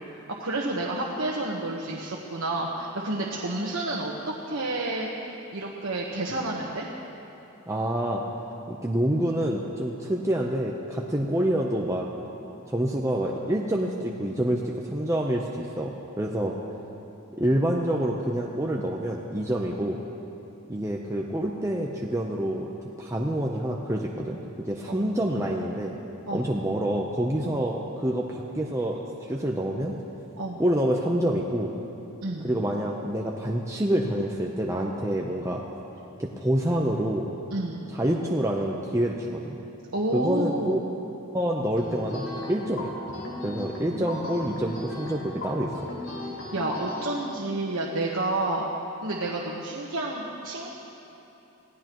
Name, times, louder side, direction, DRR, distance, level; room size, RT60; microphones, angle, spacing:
voice 1, 0.4-4.1 4.5-5.1 5.5-6.9 24.9-25.1 26.3-26.5 27.4-27.6 30.4-30.6 32.2-32.5 37.5-37.8 39.9-40.8 46.2-48.6 49.0-50.7, right 2 dB, 80° right, -3 dB, 1.3 m, -30 dB
voice 2, 7.7-8.2 8.7-12.1 12.7-16.6 17.4-20.0 20.7-22.7 23.0-26.0 26.3-29.9 30.6-31.7 32.4-35.6 36.2-37.3 37.9-39.6 40.1-40.8 41.3-42.9 43.4-45.7, right 1 dB, 15° right, -2 dB, 0.8 m, -27 dB
sound 1, 41.8-47.0, left 1 dB, 75° left, 4.7 m, -36 dB
25.5 x 16.5 x 3.1 m, 2.9 s
head